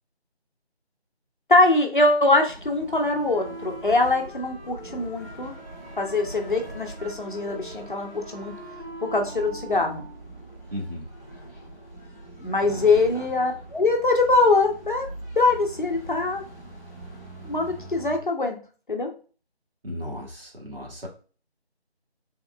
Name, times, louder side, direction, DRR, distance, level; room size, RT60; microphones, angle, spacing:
voice 1, 1.5-5.5 6.0-8.5 9.0-10.0 12.4-15.1 15.4-16.4 17.4-18.6 18.9-19.1, left 3 dB, 50° left, 4 dB, 0.6 m, -22 dB
sound 1, 2.5-18.2, right 1 dB, 15° left, 0.9 m, -42 dB
Wind instrument woodwind instrument, 2.8-10.4, right 2 dB, 85° right, 1.0 m, -43 dB
voice 2, 10.7-11.0 12.6-12.9 19.8-21.1, left 1 dB, 60° right, -1 dB, 1.2 m, -35 dB
3.5 x 2.2 x 2.3 m, 0.37 s
figure-of-eight pair, 165°, 32 cm